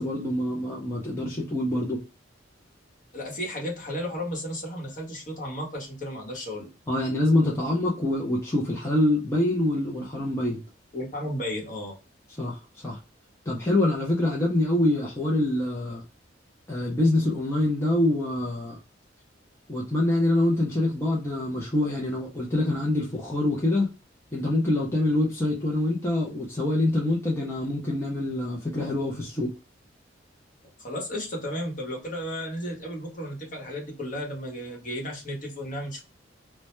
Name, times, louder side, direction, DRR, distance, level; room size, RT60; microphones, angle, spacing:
voice 1, 0.0-2.0 6.9-10.6 12.4-13.0 13.5-16.0 16.7-18.8 19.7-23.9 24.3-29.5, left 1 dB, 15° left, -3 dB, 0.4 m, -25 dB
voice 2, 3.1-6.7 10.9-12.0 30.8-36.0, equal, 45° left, -1 dB, 0.9 m, -34 dB
2.1 x 2.1 x 2.9 m, 0.32 s
head